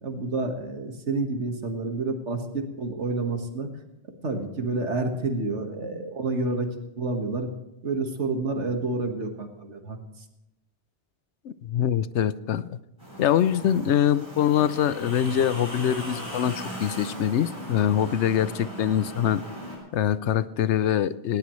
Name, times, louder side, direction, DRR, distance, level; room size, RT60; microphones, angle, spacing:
voice 1, 0.0-3.7 4.2-6.7 7.0-7.5 7.8-10.0, right 3 dB, 90° right, 4 dB, 2.0 m, -29 dB
voice 2, 11.4-12.8 13.2-19.4 19.9-21.4, left 10 dB, 80° left, 15 dB, 1.0 m, -24 dB
sound 1, 13.0-19.8, equal, 20° left, 6.9 m, -38 dB
18.5 x 18.0 x 3.2 m, 0.90 s
omnidirectional pair, 1.2 m